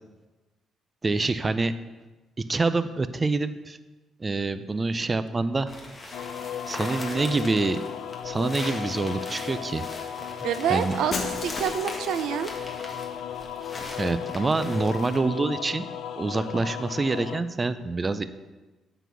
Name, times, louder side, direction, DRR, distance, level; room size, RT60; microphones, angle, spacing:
voice 1, 1.0-1.8 2.4-3.8 4.2-5.7 6.7-7.8 8.2-9.8 10.7-10.9 14.0-15.8 16.2-18.2, right 3 dB, 25° right, 12 dB, 0.4 m, -26 dB
sound 1, 5.7-15.2, left 2 dB, 30° left, 1.6 m, -40 dB
sound 2, 6.1-17.4, left 9 dB, 75° left, 0.4 m, -35 dB
voice 2, 10.4-12.5, right 8 dB, 80° right, 11 dB, 0.5 m, -27 dB
Shatter, 11.1-12.5, left 3 dB, 50° left, 1.2 m, -34 dB
9.1 x 4.0 x 6.9 m, 1.2 s
cardioid pair, 90°, 0 cm